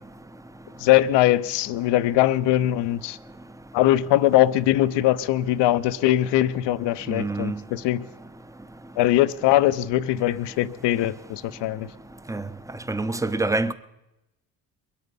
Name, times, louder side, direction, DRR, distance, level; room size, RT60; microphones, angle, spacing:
voice 1, 0.8-3.2 3.7-8.1 9.0-11.9, left 14 dB, 60° left, 0.8 m, -21 dB
voice 2, 7.1-7.6 12.3-12.4 12.9-13.7, right 2 dB, 5° right, 0.8 m, -25 dB
22.5 x 8.5 x 5.3 m
hypercardioid pair, 55°, 49 cm